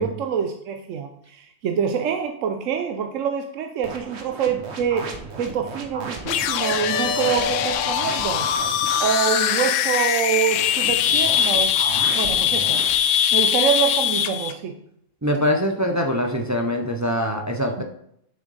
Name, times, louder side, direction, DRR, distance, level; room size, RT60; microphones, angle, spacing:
voice 1, 0.0-8.5 9.0-11.8 12.1-12.8 13.3-14.8, right 7 dB, 70° right, 5 dB, 1.0 m, -25 dB
sound 1, 3.8-9.1 10.4-12.9, right 4 dB, 55° right, 1.2 m, -36 dB
sound 2, 6.2-14.5, left 9 dB, 70° left, 0.9 m, -21 dB
voice 2, 15.2-17.8, equal, 25° right, 3 dB, 0.4 m, -23 dB
7.0 x 6.5 x 4.0 m, 0.72 s
omnidirectional pair, 1.4 m